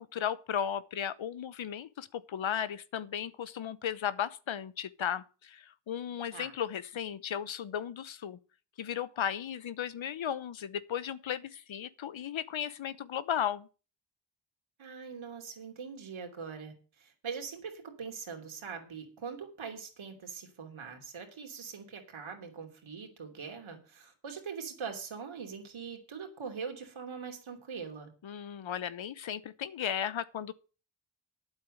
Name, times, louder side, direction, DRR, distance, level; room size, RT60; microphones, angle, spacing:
voice 1, 0.0-8.4 8.8-13.7 28.2-30.5, left 9 dB, 70° left, 0.9 m, -35 dB
voice 2, 14.8-28.1, right 6 dB, 80° right, 3.0 m, -42 dB
9.1 x 7.6 x 7.7 m
cardioid pair, 50°, 48 cm